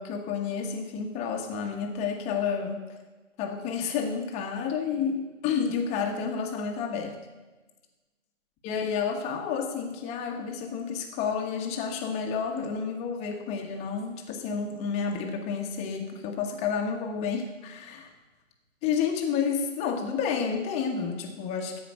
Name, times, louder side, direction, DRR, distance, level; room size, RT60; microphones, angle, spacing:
voice 1, 0.0-2.8 3.4-7.2 8.6-18.1 18.8-21.8, left 6 dB, 15° left, 3 dB, 1.3 m, -30 dB
14.5 x 5.1 x 9.2 m, 1.2 s
hypercardioid pair, 145°, 39 cm